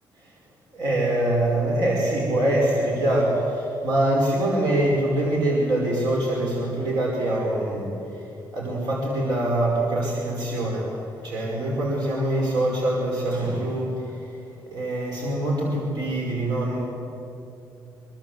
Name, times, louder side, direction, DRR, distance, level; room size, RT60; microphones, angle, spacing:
voice 1, 0.7-8.2 8.5-10.9 11.2-14.1 14.7-16.8, right 1 dB, 70° right, -2 dB, 4.9 m, -24 dB
24.5 x 22.5 x 7.9 m, 2.7 s
cardioid pair, 180°, 7 cm